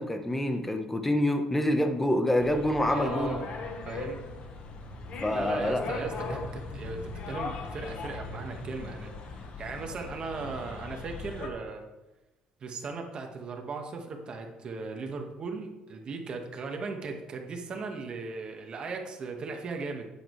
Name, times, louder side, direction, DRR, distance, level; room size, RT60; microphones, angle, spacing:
voice 1, 0.0-3.4 5.2-5.8 6.3-6.4, left 1 dB, 10° left, 6 dB, 1.0 m, -27 dB
sound 1, 2.4-11.5, left 3 dB, 60° left, 1.3 m, -38 dB
voice 2, 2.9-3.5 3.8-4.2 5.3-11.8 12.6-20.1, right 4 dB, 45° right, 3 dB, 1.6 m, -37 dB
10.0 x 8.7 x 3.3 m, 1.0 s
cardioid pair, 115°, 2 cm